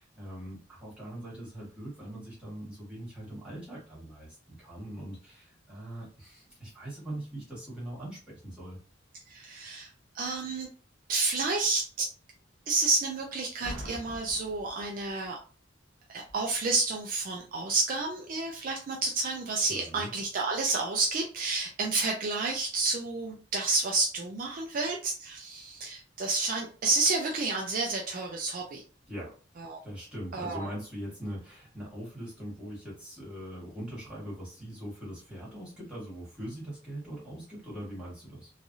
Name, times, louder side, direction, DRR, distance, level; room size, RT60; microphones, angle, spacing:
voice 1, 0.0-8.8 19.7-20.1 29.1-29.4 29.8-38.5, right 1 dB, 5° right, -7 dB, 1.6 m, -41 dB
voice 2, 9.3-9.9 10.1-10.7 11.1-12.1 12.7-15.4 16.1-28.8 29.6-29.8 30.3-30.7, right 3 dB, 45° right, 1 dB, 0.4 m, -30 dB
Boom, 13.6-15.4 16.3-16.5, equal, 60° right, 0.9 m, -43 dB
3.2 x 2.3 x 2.6 m, 0.38 s
head